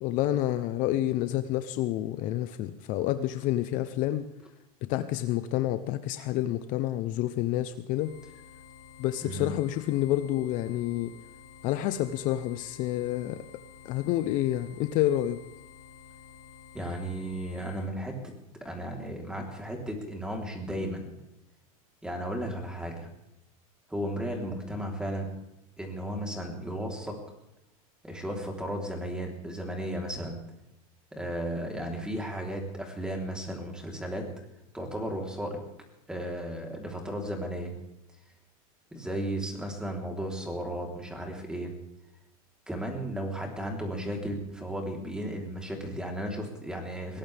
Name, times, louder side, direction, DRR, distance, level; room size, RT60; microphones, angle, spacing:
voice 1, 0.0-4.3 4.9-8.1 9.0-11.1 11.6-13.4 13.8-15.4, left 14 dB, 45° left, 11 dB, 0.8 m, -28 dB
sound 1, 7.9-17.9, left 7 dB, 70° left, 4.0 m, -51 dB
voice 2, 16.7-18.3 18.6-21.2 22.0-23.1 23.9-25.3 25.8-27.2 28.0-30.4 31.1-34.2 34.7-35.6 36.1-37.7 38.9-41.7 42.7-47.2, right 1 dB, 5° right, 1 dB, 3.7 m, -34 dB
21.5 x 18.5 x 3.5 m, 0.89 s
supercardioid pair, 140°, 19 cm